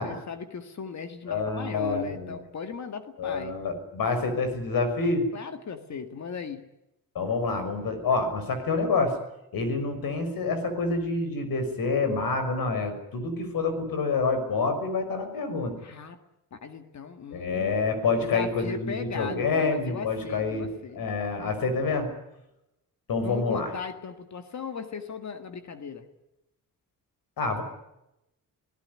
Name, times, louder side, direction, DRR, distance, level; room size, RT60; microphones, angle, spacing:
voice 1, 0.0-3.6 5.3-6.7 15.8-16.2 16.5-17.8 18.2-21.0 23.2-26.1, left 6 dB, 55° left, 8 dB, 1.9 m, -37 dB
voice 2, 1.3-2.4 3.2-5.3 7.1-9.2 9.5-15.7 17.3-20.7 20.9-22.1 23.1-23.7 27.4-27.6, left 3 dB, 90° left, 9 dB, 6.1 m, -27 dB
27.0 x 17.5 x 9.8 m, 0.88 s
wide cardioid pair, 160°, 34 cm